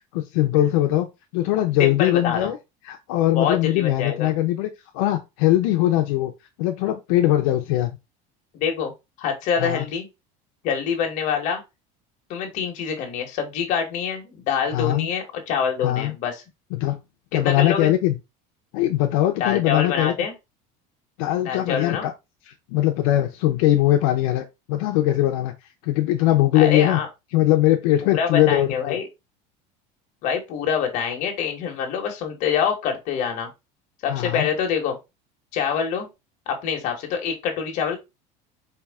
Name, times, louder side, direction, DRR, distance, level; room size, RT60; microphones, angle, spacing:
voice 1, 0.1-1.1 1.3-2.6 2.9-4.7 4.9-6.3 6.6-7.9 9.6-9.9 14.7-15.1 15.8-16.1 16.7-17.0 17.3-18.2 18.7-20.1 21.2-22.1 22.5-25.5 25.8-27.0 27.3-29.0 34.1-34.5, left 14 dB, 75° left, 0.6 m, -21 dB
voice 2, 1.8-2.5 3.3-4.3 8.5-8.9 9.2-10.1 10.6-11.6 12.3-16.4 17.4-17.9 19.4-20.3 21.4-22.1 26.5-27.1 28.0-29.1 30.2-33.5 34.0-35.0 35.5-36.1 36.5-38.0, left 7 dB, 45° left, 1.2 m, -25 dB
4.5 x 2.7 x 3.4 m
cardioid pair, 175°, 18 cm